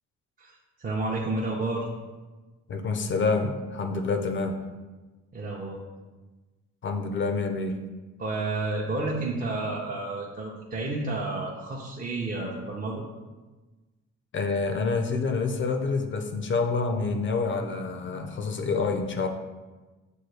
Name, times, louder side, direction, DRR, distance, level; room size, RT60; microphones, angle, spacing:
voice 1, 0.4-1.9 5.3-5.8 8.2-13.0, right 2 dB, 30° right, -3 dB, 0.6 m, -31 dB
voice 2, 2.7-4.6 6.8-7.8 14.3-19.3, left 4 dB, 40° left, 5 dB, 0.4 m, -27 dB
6.2 x 2.3 x 3.2 m, 1.2 s
cardioid pair, 90°, 30 cm